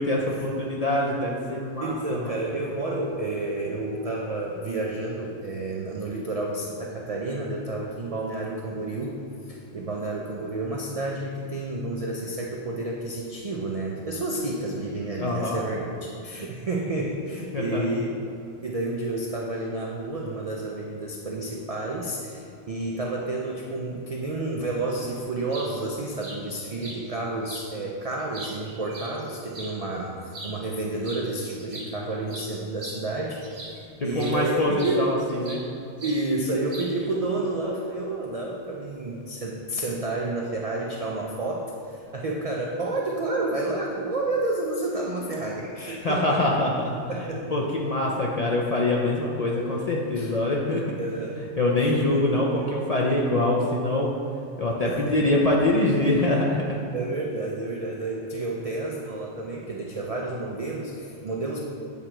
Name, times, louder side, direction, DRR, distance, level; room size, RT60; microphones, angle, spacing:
voice 1, 0.0-2.4 15.2-15.6 17.5-17.8 34.0-35.6 46.0-51.0 51.6-54.1 54.6-56.8, left 1 dB, 55° left, -3 dB, 0.4 m, -24 dB
voice 2, 1.8-9.2 9.5-18.2 18.6-33.4 33.7-33.8 34.0-35.0 36.0-46.6 47.1-47.5 50.2-50.3 51.0-51.4 51.8-52.7 54.9-55.2 56.9-61.6, right 2 dB, 75° right, -2 dB, 0.3 m, -30 dB
sound 1, 25.5-25.7 26.2-26.4 26.8-27.0 27.5-27.6 28.1-29.7 30.3-30.6 31.0-31.2 31.5-33.8 34.2-34.4 34.8-35.7 36.0-36.2 36.7-37.1, right 2 dB, 50° right, 1.1 m, -40 dB
8.2 x 2.9 x 4.4 m, 2.5 s
omnidirectional pair, 1.3 m